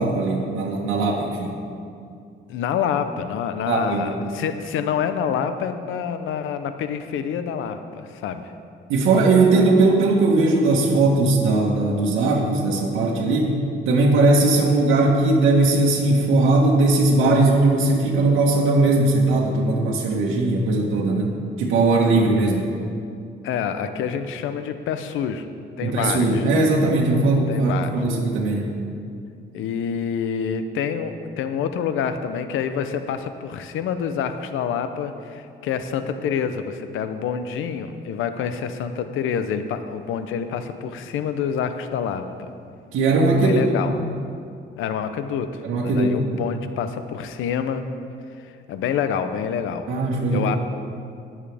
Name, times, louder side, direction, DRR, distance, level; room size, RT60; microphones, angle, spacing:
voice 1, 0.0-1.5 3.7-4.3 8.9-13.5 13.9-21.3 21.6-22.7 25.8-28.7 42.9-43.6 45.6-46.3 49.9-50.5, right 2 dB, 85° right, -3 dB, 1.4 m, -19 dB
voice 2, 2.5-8.5 23.4-25.5 25.8-26.5 27.5-28.0 29.5-42.5 43.3-43.9 44.8-47.8 48.4-49.9 50.3-50.6, left 7 dB, 85° left, 9 dB, 0.7 m, -27 dB
20.0 x 7.4 x 3.5 m, 2.4 s
cardioid pair, 90°, 20 cm